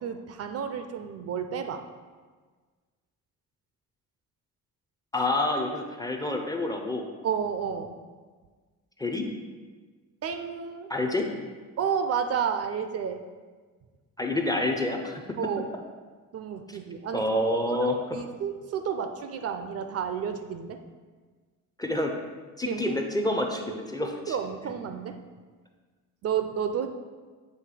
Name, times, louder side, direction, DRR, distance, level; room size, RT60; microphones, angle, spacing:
voice 1, 0.0-1.8 7.2-8.0 10.2-10.9 11.8-13.2 15.4-15.7 16.3-17.3 17.7-20.8 22.7-23.0 24.0-25.2 26.2-26.9, right 7 dB, 45° right, 8 dB, 0.4 m, -31 dB
voice 2, 5.1-7.1 9.0-9.3 10.9-11.3 14.2-15.2 16.7-16.8 17.1-18.2 21.8-22.1 22.6-24.4, left 1 dB, 10° left, 2 dB, 0.4 m, -28 dB
7.7 x 3.0 x 4.8 m, 1.4 s
cardioid pair, 130°, 34 cm